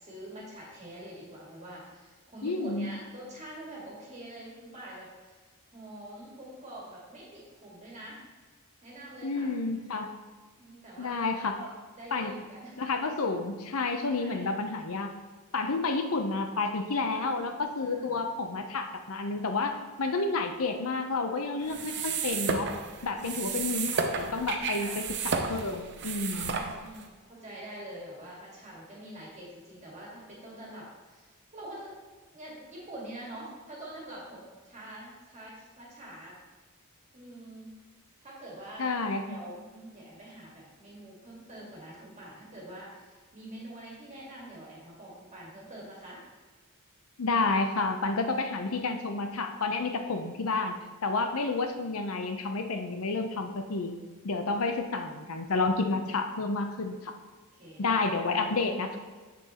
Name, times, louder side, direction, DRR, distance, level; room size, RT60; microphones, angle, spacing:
voice 1, 0.0-5.4 5.7-8.2 8.8-9.5 10.5-11.7 11.9-12.8 14.2-14.5 17.0-18.2 21.6-22.1 23.0-23.4 24.8-25.0 26.5-31.9 32.3-36.4 37.1-37.7 38.2-38.9 39.3-46.2 57.5-58.0 58.2-58.5, right 1 dB, 35° right, -5 dB, 1.8 m, -45 dB
voice 2, 2.4-2.9 9.2-10.1 11.0-11.6 12.1-12.3 12.8-15.1 15.5-22.7 23.0-26.6 38.8-39.2 47.2-54.0 54.2-57.1 57.8-59.0, left 3 dB, 75° left, 6 dB, 0.7 m, -30 dB
sound 1, 21.6-27.1, right 5 dB, 55° right, 0.6 m, -32 dB
7.0 x 7.0 x 3.0 m, 1.4 s
head